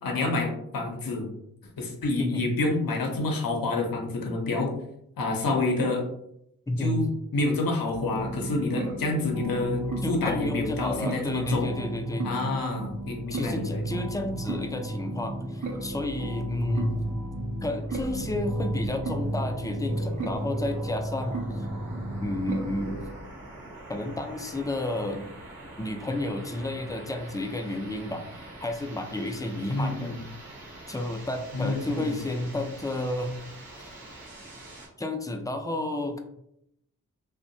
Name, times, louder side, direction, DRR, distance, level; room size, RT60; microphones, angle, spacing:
voice 1, 0.0-1.3 1.8-4.7 5.2-6.0 6.8-7.1 7.3-11.7 12.2-13.8 29.7-30.2 31.5-32.1, left 2 dB, 75° left, 1 dB, 0.7 m, -28 dB
voice 2, 6.7-7.1 10.0-12.3 13.3-17.0 17.6-21.7 22.2-23.0 23.9-25.3 25.8-30.1 30.9-33.4 35.0-36.2, left 2 dB, 10° left, 5 dB, 0.4 m, -31 dB
sound 1, 7.9-23.1, right 1 dB, 60° right, 0.7 m, -33 dB
sound 2, 17.9-34.9, right 1 dB, 85° right, 0.9 m, -44 dB
2.6 x 2.1 x 2.6 m, 0.76 s
cardioid pair, 40°, 35 cm